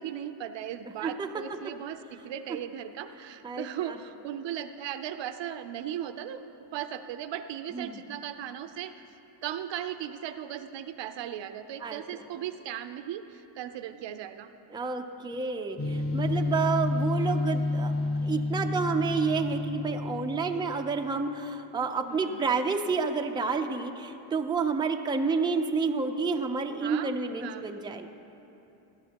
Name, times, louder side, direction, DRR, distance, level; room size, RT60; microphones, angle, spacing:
voice 1, 0.0-6.4 6.7-9.0 9.4-14.5 22.0-22.6 26.8-27.1 27.4-27.7, right 10 dB, 65° right, 10 dB, 0.7 m, -37 dB
voice 2, 3.4-4.0 7.7-8.0 11.8-12.0 14.7-17.9 18.2-28.1, right 4 dB, 10° right, 4 dB, 0.5 m, -29 dB
sound 1, 15.8-20.7, left 2 dB, 30° left, 1.2 m, -29 dB
18.0 x 12.0 x 2.9 m, 2.9 s
cardioid pair, 110°, 48 cm